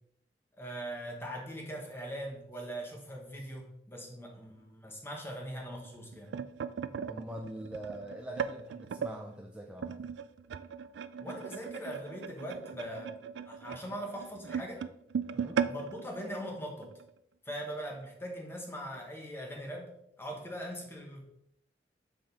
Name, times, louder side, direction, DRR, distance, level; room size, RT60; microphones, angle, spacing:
voice 1, 0.6-6.3 11.2-13.2 13.5-14.8 15.6-16.9 17.4-19.9 20.2-21.3, equal, 15° left, 0 dB, 1.2 m, -41 dB
voice 2, 4.0-4.4 7.1-10.0 15.3-15.6, right 1 dB, 5° right, 1 dB, 0.4 m, -44 dB
sound 1, 5.8-9.2 9.8-17.1 17.5-17.7 18.0-18.2 19.0-19.1, right 7 dB, 85° right, 0.3 m, -38 dB
6.8 x 3.8 x 4.0 m, 0.75 s
head